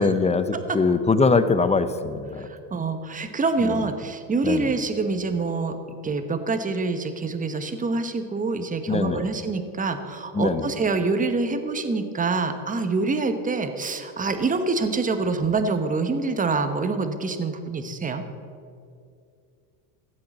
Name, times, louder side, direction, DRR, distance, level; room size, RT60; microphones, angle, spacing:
voice 1, 0.0-2.5 3.6-3.8 4.4-4.7 8.9-9.3 10.3-10.7, left 4 dB, 15° left, 11 dB, 0.6 m, -22 dB
voice 2, 2.4-5.8 6.0-18.2, right 3 dB, 15° right, 8 dB, 1.1 m, -26 dB
15.5 x 7.7 x 7.3 m, 2.4 s
supercardioid pair, 105°, 48 cm